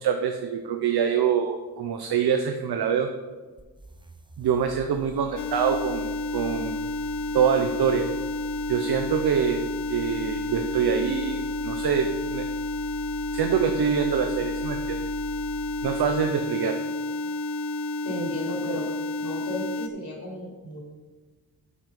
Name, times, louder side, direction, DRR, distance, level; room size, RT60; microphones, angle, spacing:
voice 1, 0.0-3.1 4.4-6.1 6.3-6.9 7.3-8.1 8.7-9.6 9.9-12.5 13.3-15.0 15.8-16.8, right 7 dB, 80° right, 5 dB, 0.8 m, -25 dB
sound 1, 3.6-16.3, equal, 15° right, 0.6 m, -42 dB
sound 2, 5.4-19.9, left 2 dB, 40° left, 0.5 m, -31 dB
voice 2, 18.0-18.9 19.2-20.8, left 1 dB, 55° left, -4 dB, 3.4 m, -34 dB
9.5 x 6.2 x 5.5 m, 1.3 s
wide cardioid pair, 115°, 37 cm